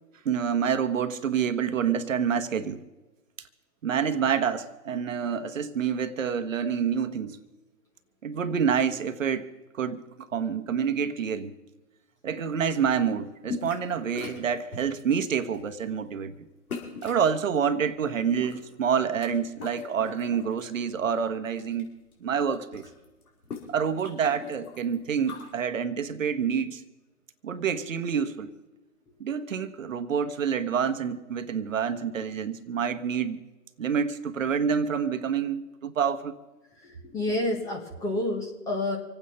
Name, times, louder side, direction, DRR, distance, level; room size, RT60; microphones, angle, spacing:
voice 1, 0.2-2.8 3.8-7.4 8.2-9.5 9.7-11.5 12.2-16.3 17.0-21.9 22.2-22.9 23.7-26.8 27.4-28.5 29.2-33.4 33.8-36.3, right 7 dB, 50° right, 1.2 m, -27 dB
sound 1, 13.4-13.9 14.1-15.0 15.5-15.8 16.7-17.3 18.1-19.3 19.5-20.7 21.1-21.8 22.1-22.2 22.4-25.5, left 5 dB, 60° left, 5.1 m, -40 dB
voice 2, 36.8-39.0, left 2 dB, 5° left, 0.9 m, -29 dB
26.0 x 8.9 x 5.6 m
hypercardioid pair, 145°, 48 cm